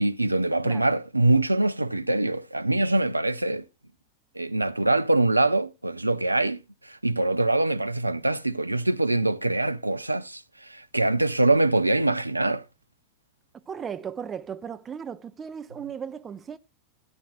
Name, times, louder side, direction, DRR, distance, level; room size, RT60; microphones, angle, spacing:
voice 1, 0.0-3.6 4.4-12.6, right 2 dB, 85° right, 0.5 m, -24 dB
voice 2, 13.7-16.6, right 7 dB, 20° right, 0.9 m, -36 dB
17.0 x 9.1 x 2.3 m
figure-of-eight pair, 90°, 0 cm